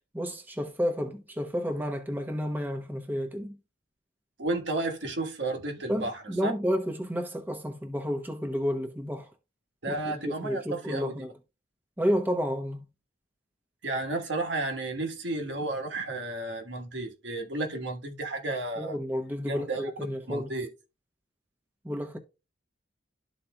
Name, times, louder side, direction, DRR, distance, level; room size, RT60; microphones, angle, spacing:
voice 1, 0.1-3.5 5.9-9.3 9.9-11.3 12.0-12.8 18.8-20.5 21.8-22.2, equal, 10° right, 0.9 m, -31 dB
voice 2, 4.4-6.5 9.8-11.3 13.8-19.0 19.5-19.9 20.3-20.7, right 2 dB, 75° right, 1.3 m, -32 dB
12.5 x 4.2 x 2.2 m
head